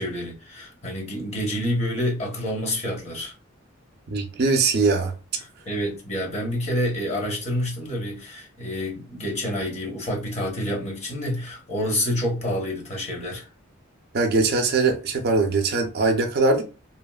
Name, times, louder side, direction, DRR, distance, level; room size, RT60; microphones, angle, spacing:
voice 1, 0.0-3.3 5.4-13.5, left 1 dB, 35° left, 0.9 m, -28 dB
voice 2, 4.1-5.1 14.1-16.6, right 3 dB, 50° right, 0.5 m, -21 dB
2.8 x 2.5 x 2.3 m
head